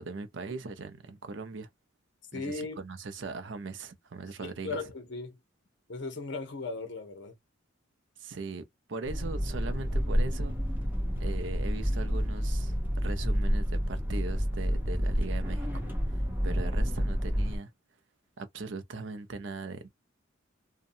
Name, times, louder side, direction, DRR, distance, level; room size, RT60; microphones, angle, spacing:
voice 1, 0.0-1.7 2.3-4.8 8.2-8.6 8.9-10.6 11.2-12.7 13.0-17.7 18.4-19.9, right 3 dB, 65° right, 0.6 m, -40 dB
voice 2, 2.3-2.8 4.4-5.4 5.9-7.3, left 3 dB, 60° left, 0.8 m, -37 dB
sound 1, 9.0-17.6, equal, 10° right, 0.9 m, -29 dB
2.7 x 2.2 x 2.5 m
head